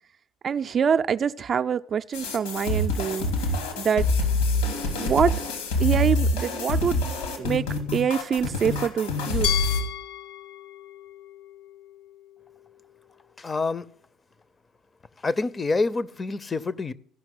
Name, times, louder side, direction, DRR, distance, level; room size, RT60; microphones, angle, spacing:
voice 1, 0.4-3.3 3.8-4.1 5.0-5.3 5.8-7.0 7.4-7.6 7.9-9.6, right 7 dB, 40° right, 0.4 m, -25 dB
sound 1, 2.1-9.8, left 2 dB, 80° left, 2.6 m, -26 dB
Glass, 9.4-12.3, left 10 dB, 60° left, 0.8 m, -33 dB
voice 2, 13.4-13.8 15.2-16.9, left 3 dB, 25° left, 0.6 m, -27 dB
15.5 x 5.8 x 9.3 m
hypercardioid pair, 60°, 0 cm